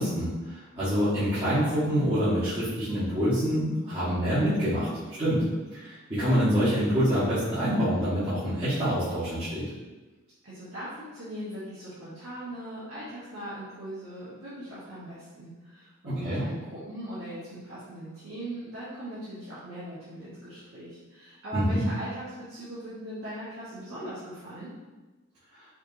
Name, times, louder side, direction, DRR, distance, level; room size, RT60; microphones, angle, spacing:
voice 1, 0.0-4.9 5.2-5.4 5.7-9.6 16.0-16.4 21.5-21.8, equal, 25° right, -16 dB, 1.5 m, -26 dB
voice 2, 10.4-24.7, right 1 dB, 85° right, -11 dB, 1.3 m, -40 dB
5.0 x 3.1 x 2.7 m, 1.2 s
head